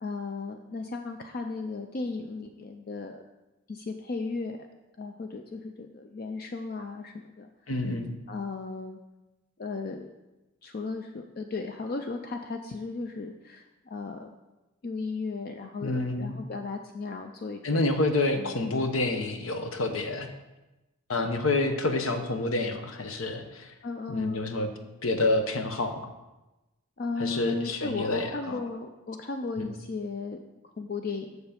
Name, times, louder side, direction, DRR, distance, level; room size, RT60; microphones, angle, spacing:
voice 1, 0.0-3.2 3.7-4.6 5.0-7.5 8.3-9.0 9.6-10.1 10.6-14.3 14.8-17.9 18.4-18.6 23.8-24.5 27.0-30.4 30.8-31.4, left 3 dB, 45° left, 5 dB, 0.4 m, -35 dB
voice 2, 7.7-8.1 15.8-16.4 17.6-20.3 21.1-23.7 24.1-24.7 25.0-25.9 27.2-28.6 29.6-29.7, left 2 dB, 75° left, 6 dB, 0.9 m, -28 dB
7.1 x 6.7 x 5.1 m, 1.0 s
head